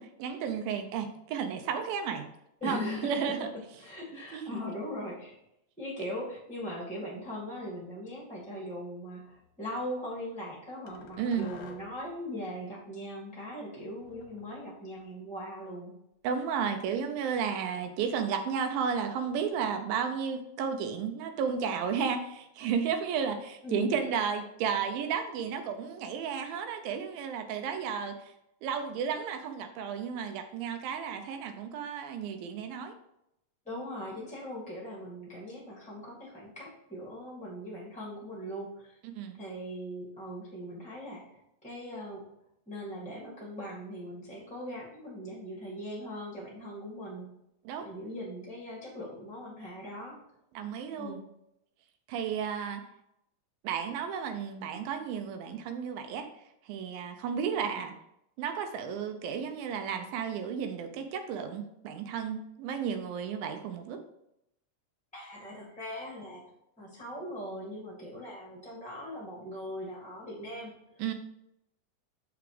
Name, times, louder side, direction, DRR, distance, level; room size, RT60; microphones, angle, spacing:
voice 1, 0.0-2.3 2.6-3.5 4.3-4.5 11.2-11.5 16.2-28.1 28.6-32.9 39.0-39.4 47.7-47.9 50.5-51.2 52.1-52.8 53.6-56.3 56.7-57.9 58.4-64.0 71.0-71.1, right 7 dB, 85° right, 6 dB, 2.4 m, -33 dB
voice 2, 2.6-3.1 3.8-5.4 5.8-15.9 23.6-24.0 33.6-39.0 39.4-42.2 42.7-47.2 47.8-50.2 51.0-51.2 65.1-66.4 66.8-70.7, equal, 5° left, -5 dB, 0.8 m, -40 dB
sound 1, 9.2-9.5 10.9-12.1 14.0-15.2, left 5 dB, 65° left, 1.7 m, -52 dB
6.8 x 5.0 x 4.9 m, 0.80 s
omnidirectional pair, 4.1 m